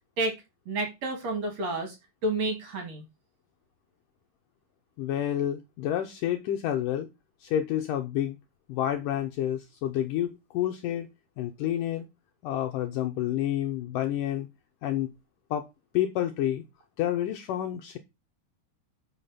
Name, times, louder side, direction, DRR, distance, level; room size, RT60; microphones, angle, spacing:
voice 1, 0.7-1.9 2.2-3.0, right 2 dB, 50° right, 2.8 m, -30 dB
voice 2, 5.0-7.1 7.4-8.4 8.7-11.1 11.4-12.1 12.4-14.5 14.8-15.1 15.5-15.7 15.9-16.6 17.0-18.0, left 11 dB, 80° left, 2.0 m, -29 dB
7.0 x 5.7 x 5.7 m
omnidirectional pair, 4.6 m